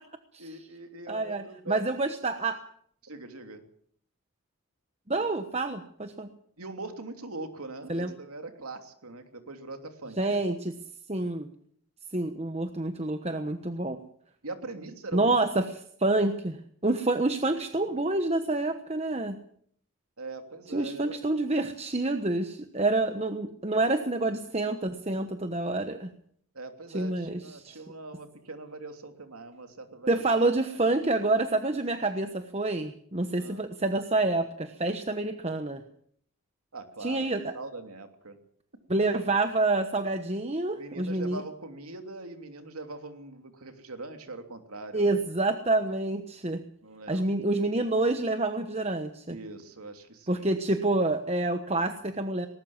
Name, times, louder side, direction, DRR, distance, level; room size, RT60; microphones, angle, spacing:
voice 1, 0.4-1.8 3.0-3.6 6.6-10.4 14.4-15.3 20.2-21.2 26.5-30.2 33.3-33.7 36.7-37.3 37.5-38.4 40.7-45.2 46.8-47.3 49.3-50.5, right 2 dB, 90° right, 6 dB, 3.0 m, -42 dB
voice 2, 1.1-2.6 5.1-6.3 7.9-8.1 10.2-10.7 11.1-11.5 12.1-14.0 15.1-19.4 20.7-26.1 26.9-27.8 30.1-35.8 37.0-37.5 38.9-41.4 44.9-46.6 47.1-49.4 50.3-52.5, right 2 dB, 30° right, 8 dB, 1.1 m, -28 dB
19.5 x 19.0 x 7.3 m, 0.62 s
head